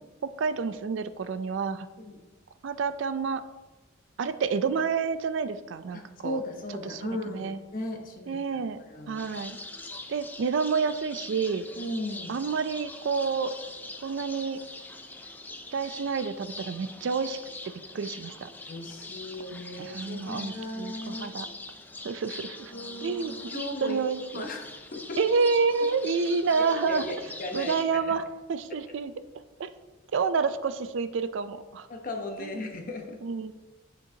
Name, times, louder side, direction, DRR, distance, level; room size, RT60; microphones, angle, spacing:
voice 1, 0.2-1.9 2.6-3.4 4.2-6.4 6.8-7.0 7.3-7.6 8.3-8.8 9.1-9.6 10.1-11.7 12.3-13.5 14.0-14.6 15.7-17.4 17.9-18.5 19.8-21.5 22.0-22.7 23.0-24.4 25.2-27.0 27.5-29.1 29.6-29.7 30.1-31.9 32.4-32.6 33.2-33.5, right 5 dB, 65° right, 12 dB, 0.4 m, -29 dB
voice 2, 5.9-9.2 11.8-12.3 18.7-21.3 22.7-25.2 26.5-28.1 28.7-28.8 31.9-33.2, left 1 dB, 45° left, 3 dB, 0.8 m, -37 dB
sound 1, 9.2-27.8, left 2 dB, 10° left, 0.3 m, -43 dB
9.4 x 4.5 x 2.7 m, 1.2 s
head